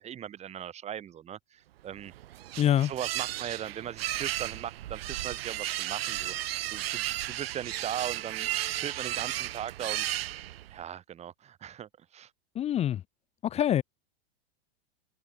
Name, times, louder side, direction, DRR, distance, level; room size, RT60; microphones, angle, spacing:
voice 1, 0.0-2.1 2.8-6.3 6.7-8.5 8.8-10.4 10.7-12.3, right 10 dB, 20° right, 3.0 m, -39 dB
sound 1, 1.9-10.8, right 14 dB, 80° right, 1.0 m, -34 dB
voice 2, 2.6-2.9 12.5-13.0 13.4-13.8, left 11 dB, 20° left, 1.2 m, -25 dB
supercardioid pair, 145°, 30 cm